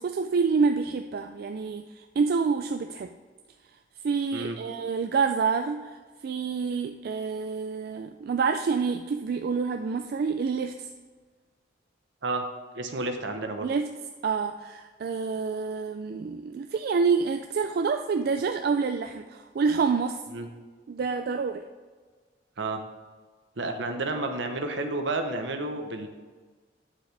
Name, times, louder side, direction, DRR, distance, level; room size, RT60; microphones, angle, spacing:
voice 1, 0.0-1.8 2.2-3.1 4.0-5.9 6.2-10.9 13.6-13.9 14.2-20.2 20.9-21.6, right 5 dB, 55° right, 6 dB, 0.3 m, -27 dB
voice 2, 12.7-13.7 20.3-20.5 22.6-22.8 23.6-26.1, right 2 dB, 75° right, 6 dB, 0.9 m, -31 dB
8.9 x 7.4 x 3.3 m, 1.4 s
head